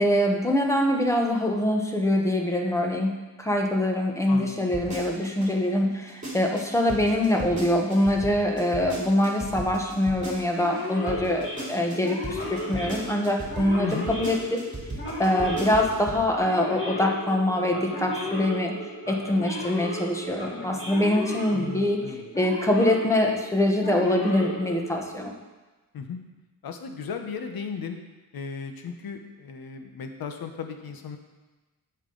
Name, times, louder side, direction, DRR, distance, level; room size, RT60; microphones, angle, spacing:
voice 1, 0.0-14.7 15.2-18.7 19.1-22.0 22.4-25.3, left 1 dB, 10° left, 1 dB, 1.0 m, -24 dB
voice 2, 4.3-5.0 13.8-14.1 21.5-22.3 25.9-26.2 26.6-28.0 28.3-31.2, left 5 dB, 75° left, 6 dB, 0.9 m, -36 dB
sound 1, 4.7-5.5 5.9-10.8 11.1-16.3 16.6-16.7, right 2 dB, 20° right, 2.8 m, -36 dB
Male speech man speaking / Siren, 10.5-25.3, left 1 dB, 35° left, 2.3 m, -35 dB
16.0 x 5.7 x 3.9 m, 1.2 s
wide cardioid pair, 180°, 36 cm